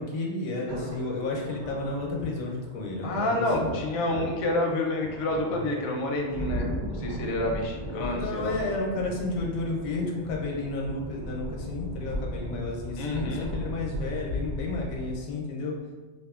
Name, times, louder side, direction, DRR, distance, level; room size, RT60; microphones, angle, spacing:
voice 1, 0.0-3.7 8.1-15.7, left 2 dB, 85° left, -1 dB, 1.0 m, -32 dB
sound 1, 0.7-15.2, equal, 65° right, 0.8 m, -36 dB
voice 2, 3.0-8.5 13.0-13.5, left 1 dB, 65° left, 0 dB, 0.6 m, -29 dB
2.5 x 2.4 x 2.3 m, 1.3 s
omnidirectional pair, 1.4 m